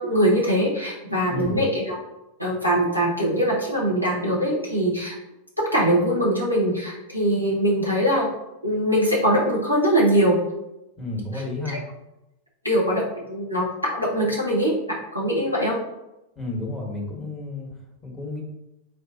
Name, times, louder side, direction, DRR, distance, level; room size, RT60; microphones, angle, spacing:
voice 1, 0.0-2.0 2.4-5.1 5.7-8.3 8.6-10.4 11.7-11.8 12.6-13.0 13.3-14.7 15.1-15.8, equal, 90° left, -5 dB, 1.4 m, -22 dB
voice 2, 1.3-1.6 11.0-11.8 16.4-18.4, left 2 dB, 15° left, -2 dB, 1.3 m, -32 dB
4.1 x 3.0 x 3.9 m, 0.92 s
figure-of-eight pair, 90°, 0 cm